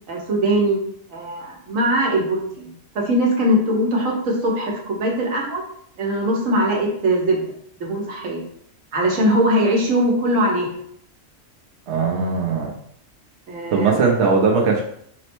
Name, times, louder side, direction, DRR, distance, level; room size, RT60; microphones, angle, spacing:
voice 1, 0.1-0.8 1.1-2.7 2.9-5.6 6.0-7.5 7.8-8.4 8.9-10.7 13.5-14.0, right 1 dB, 85° right, -1 dB, 1.3 m, -21 dB
voice 2, 11.9-12.7 13.7-14.8, right 4 dB, 65° right, -1 dB, 1.0 m, -19 dB
4.2 x 2.1 x 4.4 m, 0.67 s
omnidirectional pair, 1.3 m